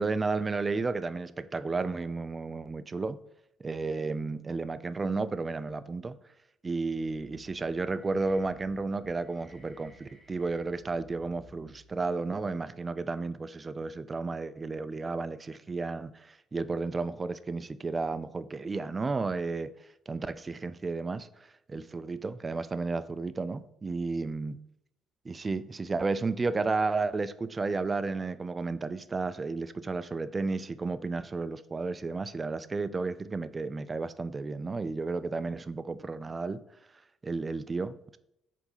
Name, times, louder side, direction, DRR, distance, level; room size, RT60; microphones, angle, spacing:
voice 1, 0.0-3.2 3.6-6.2 6.6-19.7 20.1-24.6 25.3-36.6 37.2-38.2, right 3 dB, 25° right, 0.3 m, -32 dB
sound 1, 6.7-12.1, right 1 dB, 10° left, 1.4 m, -57 dB
5.0 x 3.9 x 5.4 m
cardioid pair, 105°, 0 cm